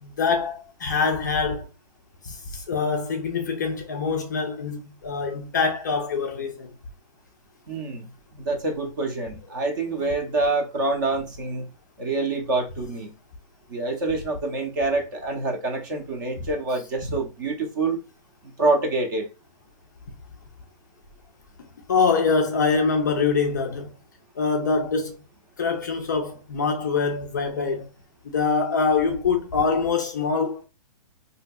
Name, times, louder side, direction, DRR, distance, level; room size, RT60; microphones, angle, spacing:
voice 1, 0.0-1.7 2.2-6.7 9.9-10.1 17.1-17.2 21.9-23.9 24.4-25.1 25.6-27.9 28.2-30.6, left 5 dB, 30° left, 0.4 m, -24 dB
voice 2, 7.7-11.7 12.0-13.1 13.7-18.0 18.6-19.3, right 3 dB, 30° right, 0.6 m, -26 dB
3.8 x 2.7 x 2.2 m
hypercardioid pair, 175°, 20 cm